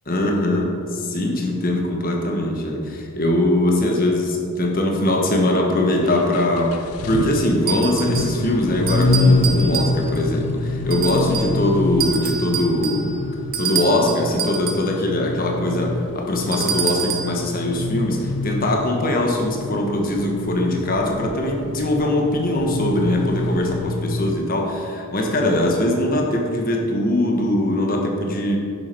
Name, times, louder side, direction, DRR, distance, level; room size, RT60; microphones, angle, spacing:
voice 1, 0.1-13.1 13.6-28.6, left 1 dB, 40° left, 1 dB, 1.4 m, -21 dB
sound 1, 6.0-24.3, left 2 dB, 85° left, 0.6 m, -26 dB
sound 2, 7.7-8.4 8.9-10.3 10.9-11.6 12.0-14.9 16.5-17.4, right 7 dB, 40° right, 1.0 m, -27 dB
10.5 x 7.7 x 4.6 m, 2.5 s
head